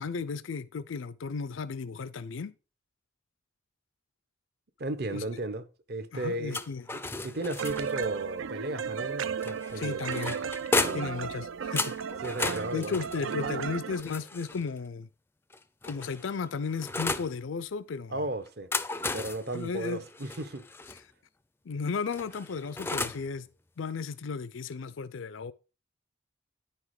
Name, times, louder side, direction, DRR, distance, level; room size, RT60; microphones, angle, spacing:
voice 1, 0.0-2.5 5.1-5.2 6.1-6.8 9.7-10.4 10.9-12.0 12.7-15.1 15.8-18.2 19.5-20.0 21.7-23.5 23.8-25.5, left 5 dB, 80° left, 0.5 m, -34 dB
voice 2, 4.8-6.6 6.9-10.0 10.8-11.1 12.2-13.6 18.1-18.7 19.1-20.7, right 1 dB, 55° right, 1.0 m, -35 dB
sound 1, 6.5-8.1 9.4-11.2 11.8-14.7 15.5-17.3 18.5-21.0 22.1-23.3, left 3 dB, 10° left, 0.4 m, -34 dB
sound 2, 7.6-14.0, right 7 dB, 80° right, 0.5 m, -34 dB
9.8 x 5.9 x 4.8 m
head